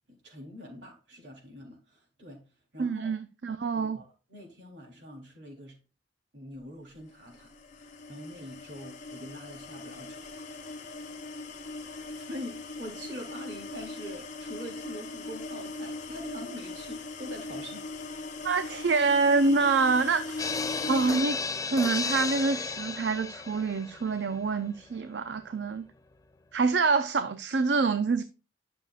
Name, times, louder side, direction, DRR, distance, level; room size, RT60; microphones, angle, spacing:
voice 1, 0.1-2.5 2.7-3.2 3.7-5.8 6.3-7.5 7.8-10.5 11.8-17.9, equal, 85° right, 3.7 m, -44 dB
voice 2, 2.8-4.0 18.4-20.5 20.9-21.4 21.7-25.9 26.5-28.2, right 4 dB, 70° right, 0.6 m, -26 dB
sound 1, 7.3-21.2, left 3 dB, 45° left, 1.1 m, -40 dB
sound 2, 20.4-25.5 25.7-25.8 26.1-26.2, left 4 dB, 20° left, 0.4 m, -34 dB
11.5 x 6.7 x 2.5 m
head